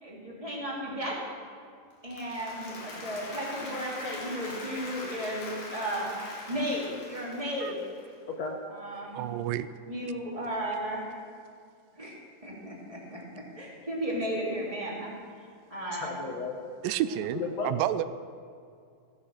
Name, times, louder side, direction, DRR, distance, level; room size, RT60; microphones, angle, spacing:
voice 1, 0.0-1.1 2.0-6.1 6.5-7.7 8.7-9.2 9.9-11.2 11.9-12.1 12.4-15.1 15.7-16.2, equal, 10° right, -4 dB, 2.5 m, -34 dB
Applause, 1.9-8.1, left 2 dB, 90° left, 4.1 m, -42 dB
voice 2, 8.3-8.6 15.9-16.6 17.4-17.9, left 4 dB, 65° left, 1 dB, 1.9 m, -34 dB
voice 3, 9.1-9.7 16.8-18.0, right 12 dB, 90° right, 14 dB, 2.3 m, -30 dB
15.5 x 10.0 x 6.5 m, 2.3 s
omnidirectional pair, 3.9 m